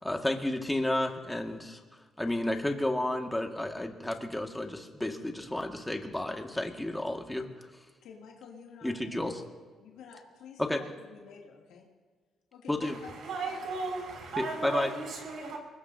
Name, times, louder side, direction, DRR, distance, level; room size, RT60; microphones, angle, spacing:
voice 1, 0.0-1.8 2.2-7.5 8.8-9.4 10.6-10.8 12.7-13.0 14.4-14.9, left 1 dB, 10° left, 3 dB, 1.9 m, -31 dB
voice 2, 8.0-9.5 9.8-11.9 12.5-13.1 13.4-13.6, left 6 dB, 90° left, -2 dB, 2.7 m, -50 dB
voice 3, 13.0-15.6, right 3 dB, 70° right, 1 dB, 5.6 m, -36 dB
24.0 x 21.0 x 2.8 m, 1.5 s
cardioid pair, 90°, 0 cm